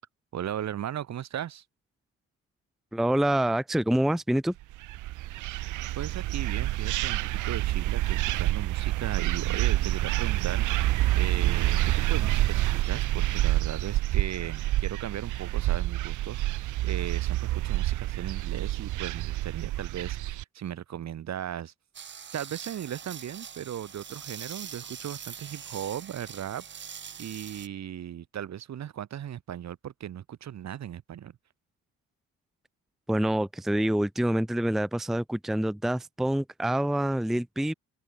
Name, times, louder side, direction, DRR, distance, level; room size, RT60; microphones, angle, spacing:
voice 1, 0.3-1.6 5.9-21.7 22.3-26.9 27.2-31.4, right 10 dB, 60° right, 2.7 m, -37 dB
voice 2, 2.9-4.5 33.1-37.7, right 1 dB, ahead, 0.6 m, -26 dB
sound 1, 4.7-20.4, right 16 dB, 80° right, 0.7 m, -27 dB
sound 2, 21.9-27.7, right 8 dB, 40° right, 0.9 m, -43 dB
open air
cardioid pair, 90°, 30 cm